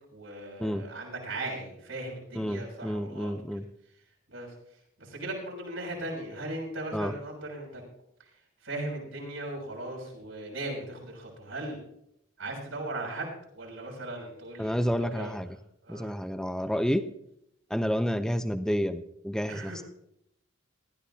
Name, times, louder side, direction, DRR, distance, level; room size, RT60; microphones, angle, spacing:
voice 1, 0.1-3.6 4.3-4.5 5.0-7.8 8.2-8.3 8.6-11.8 12.4-14.9 15.1-15.3 15.8-16.2 19.5-19.8, right 2 dB, 85° right, -1 dB, 6.6 m, -38 dB
voice 2, 2.4-3.6 6.9-7.1 14.6-15.5 15.9-17.0 17.7-19.8, equal, 5° left, 8 dB, 0.5 m, -29 dB
20.0 x 13.5 x 2.8 m, 0.75 s
head